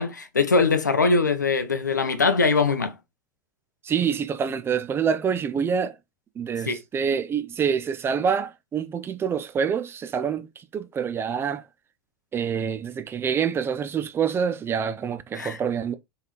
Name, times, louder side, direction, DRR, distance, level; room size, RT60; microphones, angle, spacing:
voice 1, 0.0-3.0 6.7-6.8 15.3-15.6, left 4 dB, 85° left, 0.5 m, -22 dB
voice 2, 3.8-6.0 6.4-11.6 12.3-15.9, right 7 dB, 25° right, 0.6 m, -26 dB
3.6 x 3.5 x 2.9 m
figure-of-eight pair, 80°, 9 cm